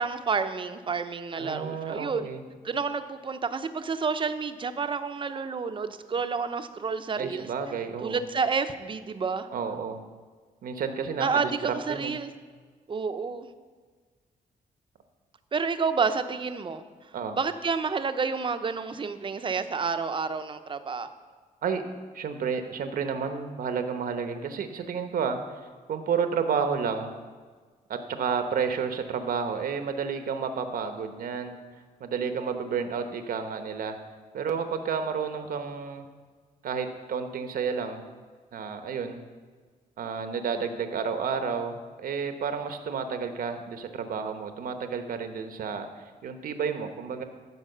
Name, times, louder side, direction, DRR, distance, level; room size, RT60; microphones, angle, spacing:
voice 1, 0.0-2.3 2.6-7.5 8.0-9.5 11.2-12.3 12.9-13.5 15.5-16.8 17.3-21.1, right 5 dB, 35° right, 9 dB, 0.6 m, -29 dB
voice 2, 1.4-2.4 7.2-8.2 9.5-10.0 10.6-12.2 17.1-17.4 21.6-21.8 22.1-25.4 25.9-27.1 27.9-31.6 32.0-34.0 34.3-36.1 36.6-38.0 38.5-39.2 40.0-47.2, right 6 dB, 75° right, 7 dB, 1.0 m, -31 dB
14.0 x 4.7 x 6.6 m, 1.5 s
cardioid pair, 125°, 15 cm